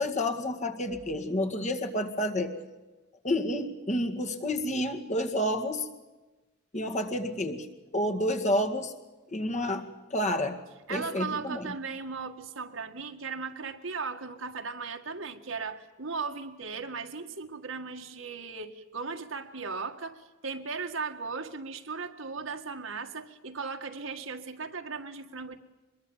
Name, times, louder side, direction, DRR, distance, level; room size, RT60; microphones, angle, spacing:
voice 1, 0.0-2.6 3.2-5.9 6.7-7.7 7.9-8.9 9.3-10.6 10.9-11.7, left 1 dB, 35° left, 5 dB, 2.1 m, -29 dB
voice 2, 10.9-25.6, right 4 dB, 75° right, 6 dB, 1.8 m, -37 dB
24.5 x 22.0 x 7.3 m, 1.2 s
head